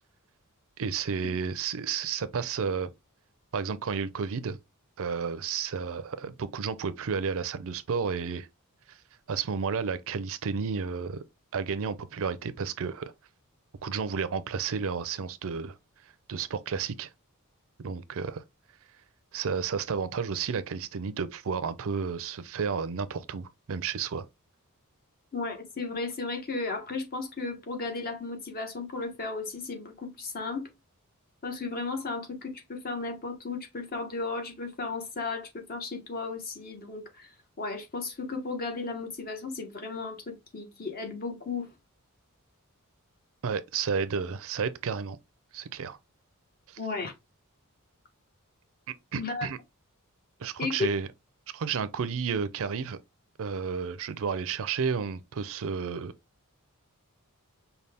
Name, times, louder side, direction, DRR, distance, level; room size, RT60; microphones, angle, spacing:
voice 1, 0.8-2.9 3.5-4.6 5.0-8.5 8.9-9.0 9.3-11.2 11.5-13.1 13.8-15.7 16.3-17.1 17.8-18.4 19.3-24.3 43.4-45.2 45.5-46.0 46.7-46.8 49.1-49.6 50.4-51.1 51.5-53.0 53.4-56.1, right 6 dB, 65° right, 0.5 m, -31 dB
voice 2, 25.3-30.7 31.4-37.3 37.6-41.7 46.8-47.1 49.2-49.5 50.6-50.9, left 3 dB, 45° left, 1.2 m, -34 dB
5.5 x 2.3 x 3.3 m
head